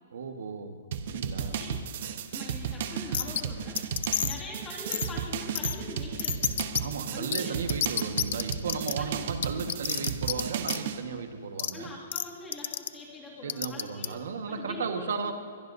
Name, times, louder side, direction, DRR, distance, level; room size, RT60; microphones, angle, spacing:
voice 1, 0.1-1.6 6.8-11.9 13.4-15.3, right 5 dB, 75° right, 6 dB, 1.5 m, -35 dB
sound 1, 0.9-11.0, right 7 dB, 50° right, 1.0 m, -34 dB
voice 2, 1.4-1.8 2.3-6.7 7.1-7.6 9.0-9.2 11.7-15.3, left 2 dB, 15° left, -4 dB, 2.2 m, -43 dB
sound 2, 3.1-3.4 3.8-4.4 4.9-5.1 5.6-5.8 6.2-6.8 7.3-7.4 7.7-8.9 9.4-10.4 10.7-10.8 11.6-11.7 12.1-12.3 12.5-12.9 13.5-14.1, left 10 dB, 60° left, 0.6 m, -29 dB
23.0 x 21.5 x 2.7 m, 2.5 s
hypercardioid pair, 170°, 0 cm